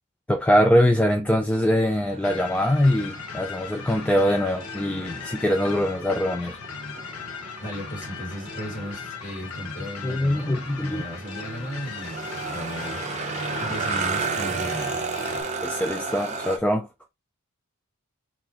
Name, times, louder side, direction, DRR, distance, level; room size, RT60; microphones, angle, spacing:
voice 1, 0.3-6.6 10.0-11.0 15.6-16.9, equal, 5° left, 0.3 m, -22 dB
sound 1, 1.5-16.6, right 4 dB, 30° right, 0.6 m, -34 dB
sound 2, 2.2-15.4, left 5 dB, 75° left, 0.9 m, -38 dB
voice 2, 7.6-13.0 13.5-15.1, equal, 35° left, 2.1 m, -36 dB
4.0 x 2.4 x 2.9 m
head